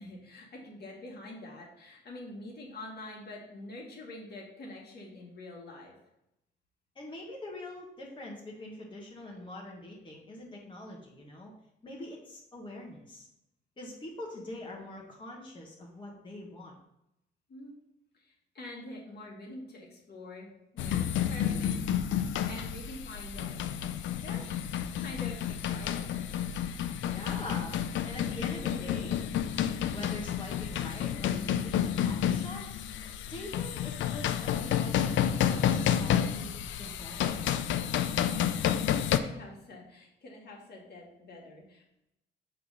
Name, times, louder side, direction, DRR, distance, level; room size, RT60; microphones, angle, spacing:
voice 1, 0.0-5.9 17.5-17.7 18.1-20.5 20.7-21.8 22.4-23.7 24.2-26.2 39.0-41.8, left 1 dB, 55° left, -2 dB, 1.9 m, -46 dB
voice 2, 6.9-11.5 11.8-13.3 13.8-16.8 27.0-29.2 29.9-32.6 33.2-37.4, left 1 dB, 25° left, -3 dB, 1.4 m, -44 dB
sound 1, 20.8-39.2, left 9 dB, 70° left, 0.5 m, -30 dB
5.8 x 3.2 x 5.4 m, 0.84 s
cardioid pair, 90°, 20 cm